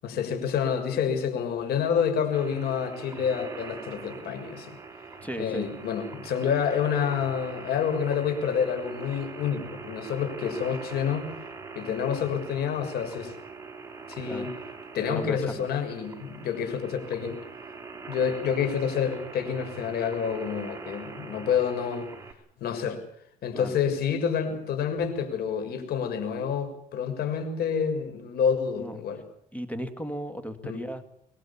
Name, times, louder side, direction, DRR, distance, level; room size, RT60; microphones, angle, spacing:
voice 1, 0.0-4.7 5.4-11.3 11.7-13.3 14.1-14.5 14.9-17.4 18.1-22.1 22.6-23.0 23.4-29.2 30.6-30.8, left 7 dB, 70° left, 7 dB, 6.7 m, -28 dB
sound 1, 2.3-22.3, right 4 dB, 15° right, 4.7 m, -42 dB
voice 2, 5.2-5.7 14.2-14.5 15.0-15.7 23.5-23.8 28.8-29.0 29.5-31.1, equal, 10° left, 9 dB, 2.3 m, -35 dB
26.0 x 21.5 x 7.3 m, 0.68 s
cardioid pair, 110°, 17 cm